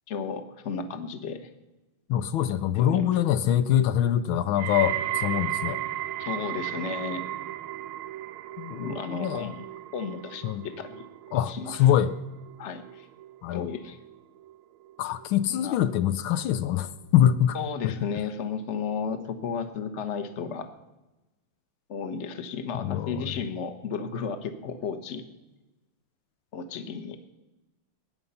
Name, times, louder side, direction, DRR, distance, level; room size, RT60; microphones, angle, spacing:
voice 1, 0.1-1.5 2.7-3.2 6.2-7.2 8.8-9.6 9.9-11.1 11.5-11.9 12.6-13.1 13.5-14.0 15.5-15.8 17.5-20.7 21.9-25.2 26.5-27.2, left 6 dB, 40° left, 9 dB, 1.3 m, -34 dB
voice 2, 2.1-5.8 8.6-9.5 10.4-10.6 11.3-12.1 13.4-13.7 15.0-17.6 17.8-17.9 22.8-23.3, left 11 dB, 80° left, 12 dB, 1.5 m, -24 dB
sound 1, 4.6-15.7 16.0-16.5 17.3-17.4, right 13 dB, 85° right, 1.5 m, -36 dB
20.5 x 9.9 x 5.6 m, 1.0 s
omnidirectional pair, 2.3 m